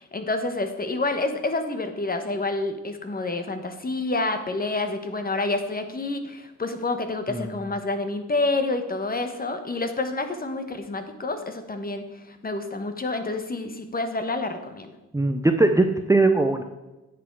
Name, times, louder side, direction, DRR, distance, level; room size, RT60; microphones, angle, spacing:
voice 1, 0.0-14.9, left 2 dB, 30° left, 8 dB, 1.3 m, -28 dB
voice 2, 15.1-16.6, right 2 dB, 10° right, 5 dB, 0.7 m, -20 dB
9.7 x 7.4 x 4.7 m, 1.1 s
cardioid pair, 90°, 31 cm